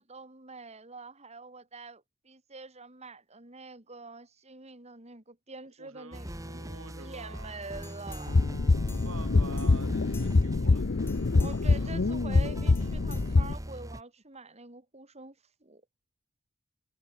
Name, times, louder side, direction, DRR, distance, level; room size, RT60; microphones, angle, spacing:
voice 1, 0.0-6.6 7.0-8.5 11.4-15.8, right 3 dB, 30° right, 3.8 m, -46 dB
voice 2, 5.8-7.7 8.3-10.8 11.5-11.9, right 3 dB, 75° right, 7.2 m, -49 dB
sound 1, 6.1-14.0, equal, 15° right, 2.9 m, -41 dB
sound 2, 7.8-9.3 9.6-10.6 11.0-11.8 12.7-13.9 14.3-14.4, left 4 dB, 10° left, 4.2 m, -53 dB
sound 3, 8.3-13.5, left 3 dB, 55° left, 0.7 m, -25 dB
head